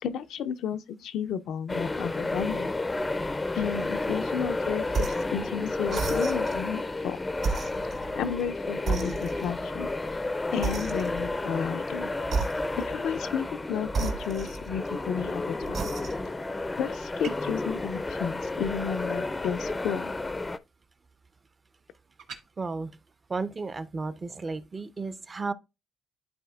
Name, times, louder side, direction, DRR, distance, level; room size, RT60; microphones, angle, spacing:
voice 1, 0.0-2.7 3.5-5.0 5.3-7.2 8.1-9.9 10.5-12.1 12.8-15.9 16.8-20.1, left 8 dB, 80° left, 0.4 m, -32 dB
sound 1, 1.7-20.6, left 2 dB, 20° left, 0.4 m, -31 dB
sound 2, 4.9-5.3 5.9-6.6 7.4-8.5 8.9-9.7 10.6-11.4 12.2-13.0 13.9-15.0 15.6-16.4, right 4 dB, 65° right, 2.7 m, -32 dB
sound 3, 17.2-17.6 22.2-22.4, right 6 dB, 80° right, 1.0 m, -40 dB
voice 2, 22.6-23.0 23.3-25.5, right 3 dB, 30° right, 0.5 m, -33 dB
12.0 x 4.2 x 2.3 m
cardioid pair, 90°, 0 cm